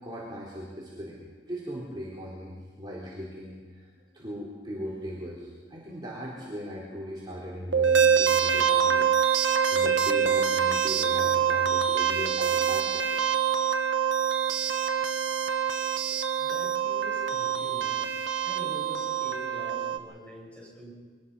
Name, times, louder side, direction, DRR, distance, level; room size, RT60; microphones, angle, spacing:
voice 1, 0.0-1.2 1.5-3.8 4.1-9.1 9.7-13.5 15.8-16.2 16.6-16.7 17.2-17.6, equal, 25° right, -6 dB, 3.9 m, -39 dB
sound 1, 7.7-20.0, right 7 dB, 80° right, 1.4 m, -25 dB
voice 2, 16.4-18.1 18.4-20.9, equal, 5° left, -4 dB, 7.3 m, -45 dB
24.0 x 21.0 x 5.6 m, 1.4 s
head